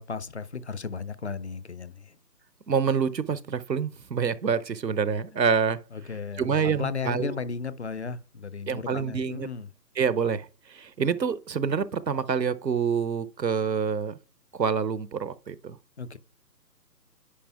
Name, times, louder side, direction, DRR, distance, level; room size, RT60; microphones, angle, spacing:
voice 1, 0.0-2.2 5.9-9.7 16.0-16.2, left 5 dB, 45° left, 0.6 m, -35 dB
voice 2, 2.7-5.8 6.4-7.4 8.7-9.5 10.0-14.1 14.6-15.8, right 6 dB, 85° right, 0.9 m, -27 dB
10.0 x 4.9 x 3.4 m
figure-of-eight pair, 145°, 49 cm